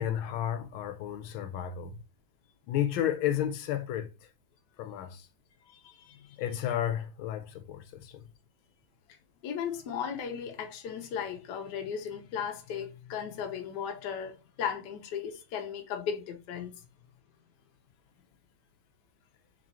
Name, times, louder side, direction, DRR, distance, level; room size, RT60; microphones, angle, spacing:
voice 1, 0.0-2.0 2.7-4.1 4.8-5.3 6.4-8.2, left 10 dB, 85° left, 1.4 m, -32 dB
voice 2, 5.7-6.4 9.4-16.7, left 7 dB, 65° left, 1.2 m, -36 dB
4.1 x 3.0 x 2.7 m
omnidirectional pair, 2.2 m